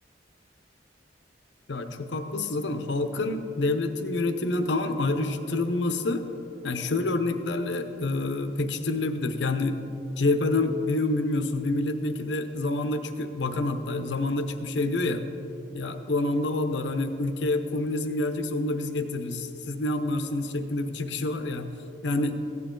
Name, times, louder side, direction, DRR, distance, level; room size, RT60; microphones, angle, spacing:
voice 1, 1.7-6.3 6.6-9.8 10.2-15.2 15.7-21.7 22.0-22.4, left 2 dB, 80° left, 8 dB, 0.8 m, -27 dB
15.0 x 9.5 x 3.8 m, 2.9 s
head